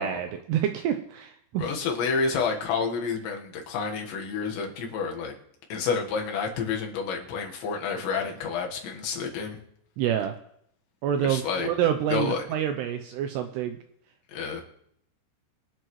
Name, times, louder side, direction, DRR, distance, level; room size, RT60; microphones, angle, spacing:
voice 1, 0.0-1.8 10.0-10.3 11.0-13.8, right 10 dB, 85° right, 7 dB, 2.3 m, -27 dB
voice 2, 1.6-5.3 5.7-9.6 11.2-11.7 12.1-12.4 14.3-14.6, left 5 dB, 70° left, 1 dB, 3.7 m, -29 dB
24.5 x 9.0 x 3.2 m, 0.70 s
omnidirectional pair, 5.6 m